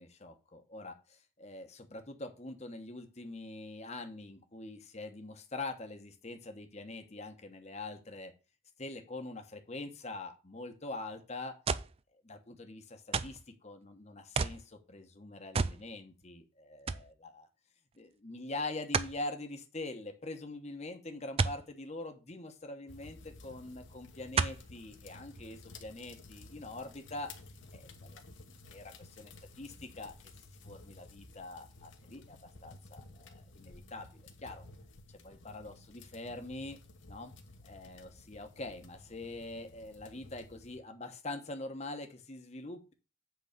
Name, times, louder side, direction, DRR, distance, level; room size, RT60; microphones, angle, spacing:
voice 1, 0.0-8.3 8.8-11.6 12.2-17.5 17.9-27.3 27.7-28.2 28.5-30.1 30.6-34.6 35.1-36.8 37.1-37.3 37.6-42.9, left 2 dB, 30° left, 6 dB, 1.1 m, -44 dB
sound 1, 11.7-12.0 13.1-13.5 14.3-14.6 15.5-15.8 16.2-16.3 16.9-17.1 18.9-19.2 21.4-21.6 23.1-23.2 24.3-24.7 25.4-25.5, right 5 dB, 30° right, 0.4 m, -31 dB
sound 2, 22.9-40.8, left 2 dB, 65° left, 1.2 m, -54 dB
8.1 x 4.0 x 6.8 m, 0.31 s
head